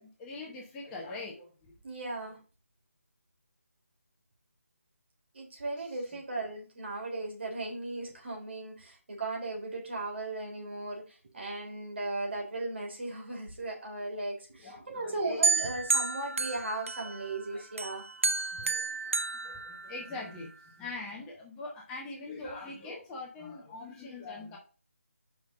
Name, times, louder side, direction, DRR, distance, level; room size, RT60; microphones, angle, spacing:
voice 1, 0.0-1.5 14.6-15.4 17.5-17.6 18.6-19.1 19.4-24.6, left 3 dB, 10° left, -2 dB, 0.9 m, -42 dB
voice 2, 1.8-2.4 5.3-18.1, right 2 dB, 50° right, 0 dB, 3.4 m, -37 dB
sound 1, 15.4-17.4 17.8-20.3, right 3 dB, 65° right, 0.6 m, -31 dB
6.1 x 5.3 x 3.7 m, 0.36 s
figure-of-eight pair, 155°, 8 cm